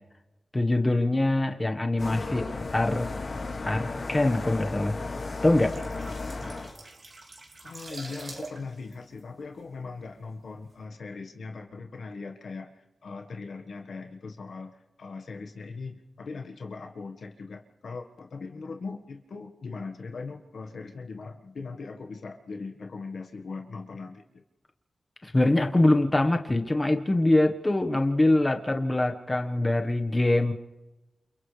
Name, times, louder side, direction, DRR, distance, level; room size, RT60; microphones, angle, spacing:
voice 1, 0.5-3.1 3.6-5.0 5.4-5.8 25.2-30.5, left 2 dB, 25° left, 4 dB, 1.4 m, -24 dB
sound 1, 2.0-6.8, left 3 dB, 55° left, 2.1 m, -34 dB
sound 2, 5.4-10.1 10.4-10.6, right 2 dB, 55° right, 3.6 m, -45 dB
voice 2, 7.6-24.4, left 4 dB, 80° left, 4 dB, 1.5 m, -40 dB
29.0 x 29.0 x 3.4 m, 1.1 s
wide cardioid pair, 90°, 0 cm